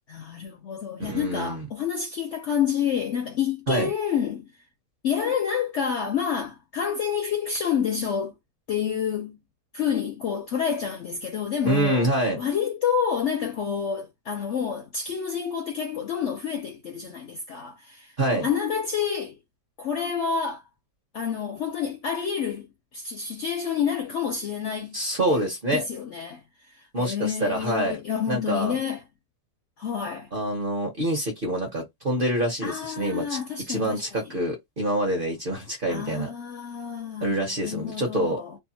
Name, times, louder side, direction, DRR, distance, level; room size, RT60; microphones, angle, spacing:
voice 1, 0.1-4.5 5.0-8.3 8.7-9.4 9.7-12.1 12.4-19.4 19.8-20.6 21.1-25.0 25.3-26.4 26.7-29.0 29.8-30.3 32.6-34.3 35.9-38.6, left 7 dB, 70° left, 0.7 m, -29 dB
voice 2, 1.0-1.7 3.7-3.9 11.6-12.4 18.2-18.5 24.9-25.8 26.9-28.0 28.3-28.8 30.3-33.4 33.7-36.3 37.2-38.4, right 1 dB, 45° right, 0.7 m, -26 dB
2.7 x 2.2 x 2.6 m
omnidirectional pair, 1.7 m